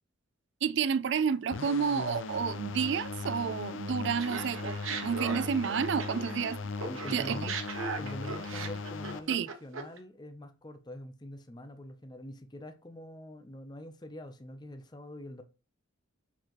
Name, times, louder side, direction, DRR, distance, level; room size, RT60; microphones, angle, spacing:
voice 1, 0.6-6.6 7.1-7.5 9.3-9.5, right 6 dB, 60° right, 0.4 m, -30 dB
sound 1, 1.5-9.2, left 4 dB, 70° left, 0.5 m, -38 dB
Laughter, 4.2-6.5 6.8-10.0, right 4 dB, 80° right, 1.1 m, -38 dB
voice 2, 6.8-7.6 7.9-15.4, left 1 dB, 20° left, 0.6 m, -44 dB
7.2 x 4.6 x 3.0 m
head